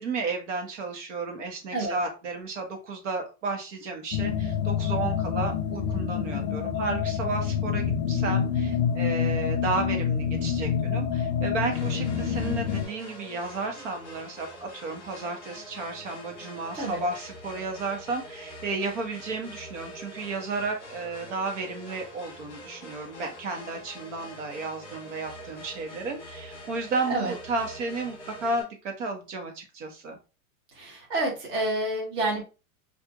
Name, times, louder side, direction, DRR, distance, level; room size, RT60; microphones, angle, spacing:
voice 1, 0.0-30.2, right 3 dB, 55° right, 3 dB, 1.1 m, -33 dB
sound 1, 4.1-12.9, left 7 dB, 50° left, 0.6 m, -27 dB
sound 2, 11.7-28.6, equal, 25° left, 1.2 m, -44 dB
voice 2, 30.7-32.4, right 2 dB, 20° right, -3 dB, 0.9 m, -28 dB
4.3 x 2.5 x 2.3 m, 0.31 s
supercardioid pair, 175°, 43 cm